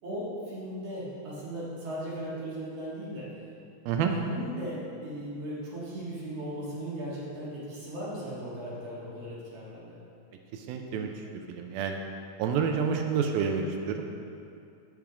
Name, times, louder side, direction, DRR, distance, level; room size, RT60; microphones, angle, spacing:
voice 1, 0.0-3.3 4.1-10.0, right 1 dB, 50° right, -7 dB, 2.3 m, -37 dB
voice 2, 10.5-11.1 11.5-12.0 12.4-14.0, right 6 dB, 80° right, 4 dB, 2.3 m, -28 dB
9.1 x 6.3 x 4.9 m, 2.5 s
omnidirectional pair, 4.5 m